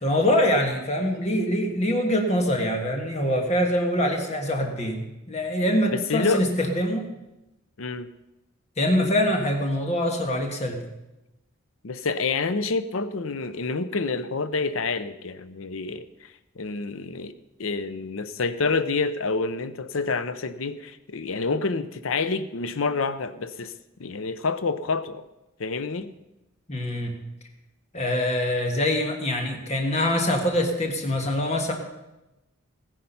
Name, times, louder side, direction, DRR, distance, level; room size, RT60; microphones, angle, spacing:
voice 1, 0.0-7.1 8.8-10.9 26.7-27.1 27.9-31.7, left 1 dB, 35° left, 3 dB, 1.5 m, -24 dB
voice 2, 5.9-6.5 7.8-8.1 11.8-16.0 16.6-17.3 17.6-23.7 24.0-25.2 25.6-26.1, left 4 dB, 80° left, 13 dB, 0.7 m, -28 dB
16.0 x 10.0 x 5.5 m, 0.97 s
head